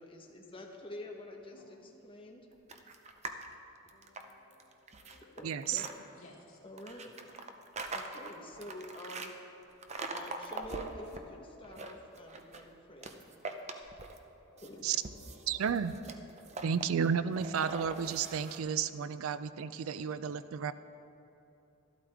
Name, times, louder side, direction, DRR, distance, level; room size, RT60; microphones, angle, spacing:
voice 1, 0.0-2.5 5.4-5.9 6.6-7.2 7.9-9.3 10.1-13.2 14.6-14.9, left 1 dB, 25° left, 0 dB, 1.1 m, -48 dB
sound 1, 2.7-3.5 3.9-5.9 6.8-9.3 9.8-11.2 11.6-12.7 13.0-14.3 14.6-18.6, right 3 dB, 35° right, 0.6 m, -43 dB
voice 2, 3.9-5.7 6.1-6.6 8.7-9.1 10.7-11.3 13.9-15.7 16.4-16.8 19.1-19.2 20.2-20.7, left 3 dB, 80° left, -2 dB, 1.8 m, -60 dB
voice 3, 5.4-5.8 14.8-15.0 15.5-16.0 16.6-20.7, right 7 dB, 75° right, 14 dB, 0.4 m, -32 dB
13.0 x 12.0 x 3.5 m, 2.8 s
head